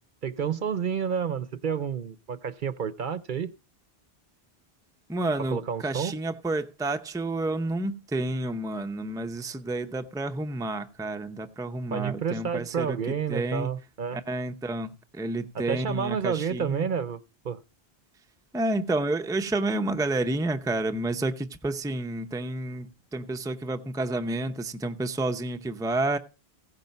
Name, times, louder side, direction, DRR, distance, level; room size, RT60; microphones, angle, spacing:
voice 1, 0.2-3.5 5.5-6.1 11.9-14.2 15.5-17.6, right 7 dB, 55° right, 0.8 m, -30 dB
voice 2, 5.1-13.0 13.3-13.7 14.1-16.9 18.5-26.2, right 2 dB, 5° right, 0.6 m, -30 dB
16.0 x 5.7 x 5.2 m
omnidirectional pair, 1.1 m